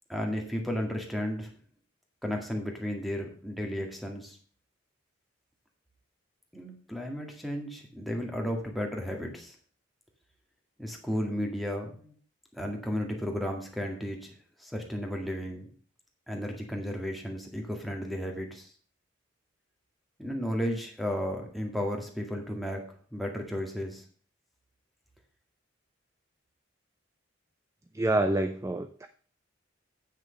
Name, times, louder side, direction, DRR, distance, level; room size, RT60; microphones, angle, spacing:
voice 1, 0.1-1.5 2.2-4.4 6.5-9.6 10.8-12.1 12.5-14.3 14.6-15.7 16.3-18.7 20.2-24.0, equal, ahead, 1 dB, 1.9 m, -34 dB
voice 2, 27.9-29.1, right 1 dB, 15° right, 9 dB, 0.4 m, -27 dB
8.3 x 6.3 x 6.4 m, 0.43 s
head